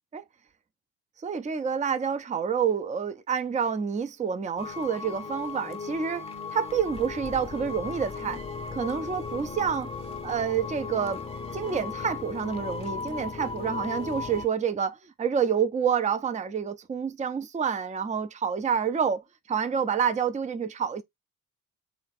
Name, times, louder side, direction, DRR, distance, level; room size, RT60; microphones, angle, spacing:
voice 1, 1.2-8.4 8.7-9.9 10.2-11.2 11.5-19.2 19.5-21.0, right 7 dB, 15° right, 0.6 m, -28 dB
sound 1, 4.6-14.5, left 4 dB, 15° left, 0.8 m, -36 dB
3.3 x 3.3 x 3.9 m
hypercardioid pair, 50°, 43 cm